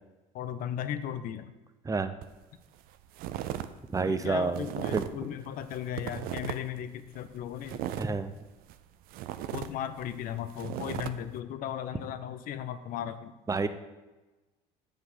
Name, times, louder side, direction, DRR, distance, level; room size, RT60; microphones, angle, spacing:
voice 1, 0.3-1.5 4.1-7.8 9.5-13.3, left 10 dB, 65° left, 11 dB, 0.7 m, -36 dB
sound 1, 2.2-2.4 2.8-3.7 3.9-5.2 5.6-6.8 7.1-8.8 9.1-11.1, right 12 dB, 70° right, 0.5 m, -37 dB
voice 2, 3.9-4.7 4.9-5.0 8.0-8.3 13.5-13.7, right 4 dB, 20° right, 11 dB, 0.7 m, -28 dB
8.0 x 5.2 x 5.3 m, 1.1 s
supercardioid pair, 80°, 16 cm